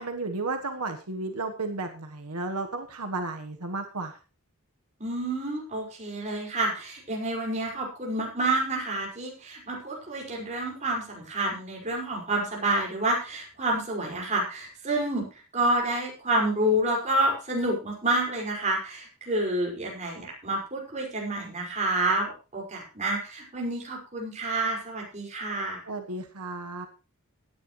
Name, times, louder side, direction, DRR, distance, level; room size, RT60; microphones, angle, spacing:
voice 1, 0.0-4.2 25.9-26.9, right 3 dB, 85° right, 5 dB, 1.3 m, -33 dB
voice 2, 5.0-25.8, right 1 dB, 30° right, -1 dB, 5.3 m, -29 dB
17.0 x 10.0 x 3.2 m, 0.33 s
head